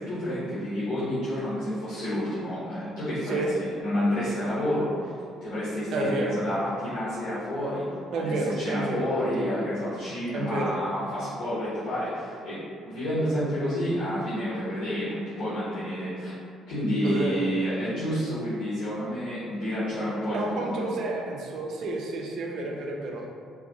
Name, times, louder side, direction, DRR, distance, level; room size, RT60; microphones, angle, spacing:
voice 1, 0.0-7.8 8.1-16.3 16.7-21.0, equal, 60° left, -13 dB, 0.8 m, -29 dB
voice 2, 5.9-6.4 8.1-9.6 10.3-10.8 17.0-17.4 20.3-23.3, right 2 dB, 55° right, 0 dB, 0.4 m, -30 dB
2.4 x 2.3 x 2.6 m, 2.2 s
figure-of-eight pair, 45°, 0 cm